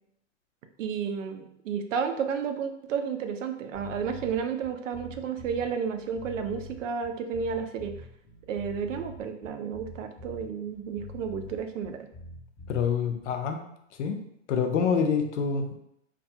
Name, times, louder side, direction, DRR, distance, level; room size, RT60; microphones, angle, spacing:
voice 1, 0.8-7.9 8.5-12.1, right 6 dB, 75° right, 7 dB, 0.5 m, -32 dB
sound 1, 3.7-13.3, left 2 dB, 10° left, 0.4 m, -45 dB
voice 2, 12.7-13.6 14.0-14.2 14.5-15.8, left 6 dB, 70° left, 5 dB, 0.5 m, -26 dB
2.3 x 2.2 x 2.7 m, 0.74 s
hypercardioid pair, 135°, 38 cm